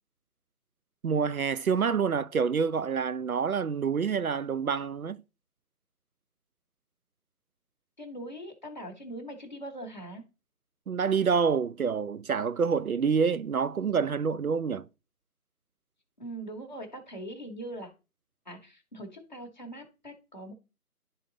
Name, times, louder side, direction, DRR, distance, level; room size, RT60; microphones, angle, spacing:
voice 1, 1.0-5.2 10.9-14.9, right 6 dB, 65° right, 0.5 m, -27 dB
voice 2, 8.0-10.2 16.2-17.9 18.4-20.5, right 1 dB, 30° left, 1.2 m, -41 dB
11.0 x 4.0 x 3.9 m
figure-of-eight pair, 170°, 47 cm